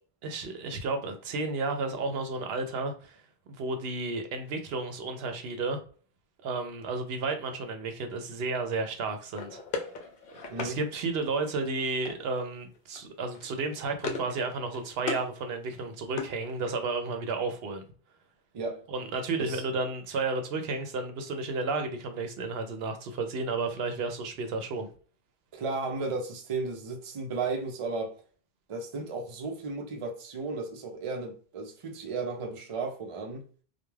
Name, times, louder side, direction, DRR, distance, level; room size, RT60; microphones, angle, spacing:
voice 1, 0.2-3.2 3.6-5.8 6.4-9.6 10.3-17.8 18.9-24.9, right 3 dB, 75° right, 0.8 m, -32 dB
sound 1, 9.3-10.7 12.0-12.5 12.7-13.0 13.3-14.4 14.6-15.3 15.7-16.9, left 3 dB, 60° left, 0.7 m, -38 dB
voice 2, 18.5-18.8 19.4-19.6 25.5-28.2 28.7-33.5, right 3 dB, 45° right, 0.4 m, -34 dB
2.2 x 2.2 x 3.0 m
omnidirectional pair, 1.1 m